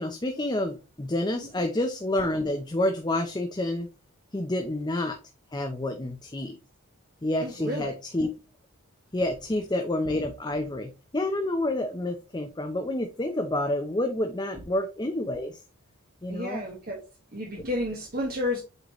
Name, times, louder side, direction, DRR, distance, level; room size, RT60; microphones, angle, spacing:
voice 1, 0.0-3.9 4.3-5.2 5.5-6.6 7.2-8.3 9.1-15.6 16.2-16.6, left 1 dB, 20° left, 5 dB, 0.6 m, -29 dB
voice 2, 7.4-7.9 16.3-17.0 17.3-18.6, left 1 dB, 40° right, -2 dB, 1.4 m, -31 dB
8.0 x 3.9 x 3.0 m, 0.30 s
head